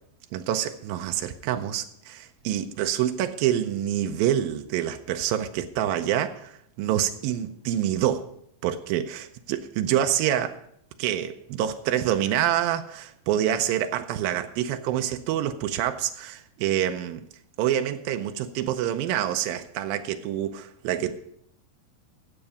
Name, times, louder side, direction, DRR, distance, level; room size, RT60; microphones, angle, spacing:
voice 1, 0.3-8.3 8.6-10.6 11.0-17.3 17.6-21.1, right 11 dB, 90° right, 2.5 m, -27 dB
14.5 x 8.0 x 4.9 m
omnidirectional pair, 4.1 m